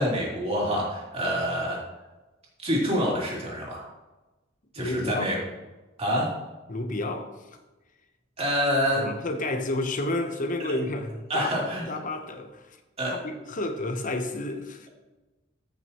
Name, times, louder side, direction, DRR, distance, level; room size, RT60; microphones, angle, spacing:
voice 1, 0.0-1.8 2.6-3.8 4.7-5.4 6.0-6.3 8.4-9.1 11.3-11.9 13.0-13.2, equal, 30° right, 3.0 m, -26 dB
voice 2, 4.8-5.3 6.7-7.5 9.0-12.8 13.0-14.9, left 2 dB, 40° left, 1.0 m, -31 dB
14.5 x 6.4 x 3.0 m
head